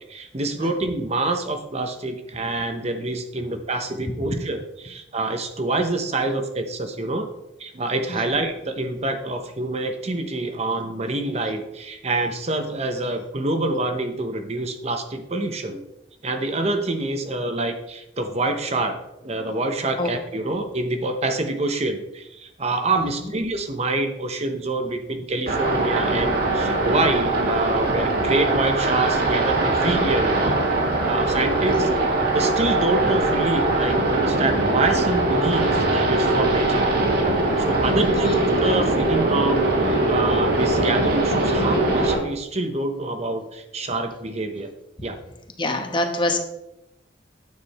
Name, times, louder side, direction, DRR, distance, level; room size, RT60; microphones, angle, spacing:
voice 1, 0.1-7.3 7.6-15.8 16.2-19.0 19.2-30.6 31.1-31.9 32.3-36.9 37.6-38.3 38.6-44.7 45.0-45.2, right 2 dB, 35° right, 7 dB, 0.9 m, -26 dB
sound 1, 25.5-42.1, right 2 dB, 55° right, 2.4 m, -21 dB
voice 2, 37.9-38.4 45.6-46.4, left 1 dB, 25° left, 5 dB, 1.2 m, -26 dB
9.6 x 7.6 x 4.2 m, 0.87 s
head